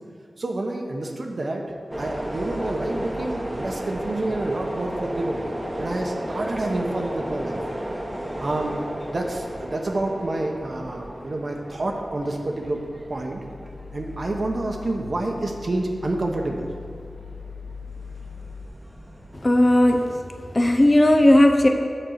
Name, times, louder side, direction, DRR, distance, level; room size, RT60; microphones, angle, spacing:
voice 1, 0.4-1.6 2.0-5.4 5.8-7.6 8.4-8.8 9.1-12.8 13.1-13.4 13.9-16.7, right 2 dB, 55° right, 1 dB, 0.8 m, -28 dB
sound 1, 1.9-19.4, right 1 dB, 20° right, 1.0 m, -34 dB
sound 2, 2.4-4.0 12.6-18.7, left 5 dB, 80° left, 0.8 m, -42 dB
voice 2, 19.3-20.2 20.5-21.7, left 1 dB, 35° left, 4 dB, 0.7 m, -16 dB
7.7 x 4.3 x 6.5 m, 2.5 s
wide cardioid pair, 60°, 0 cm